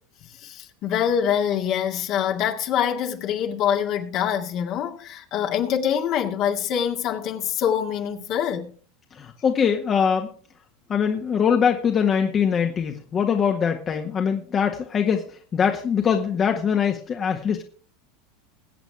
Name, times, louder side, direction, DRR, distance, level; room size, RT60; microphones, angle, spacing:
voice 1, 0.4-8.7, left 9 dB, 50° left, 2.2 m, -25 dB
voice 2, 9.2-10.3 10.9-15.3 15.5-17.6, left 7 dB, 35° left, 1.7 m, -22 dB
22.0 x 8.1 x 3.5 m
hypercardioid pair, 95°, 0 cm